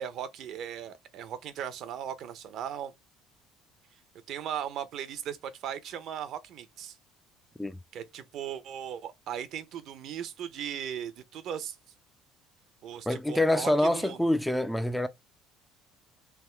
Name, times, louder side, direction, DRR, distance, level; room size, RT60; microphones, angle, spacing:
voice 1, 0.0-2.9 4.3-7.0 7.9-11.8 12.8-14.3, right 9 dB, 55° right, 0.7 m, -37 dB
voice 2, 13.1-15.1, left 1 dB, ahead, 0.4 m, -26 dB
3.5 x 2.6 x 4.3 m
cardioid pair, 135°, 0 cm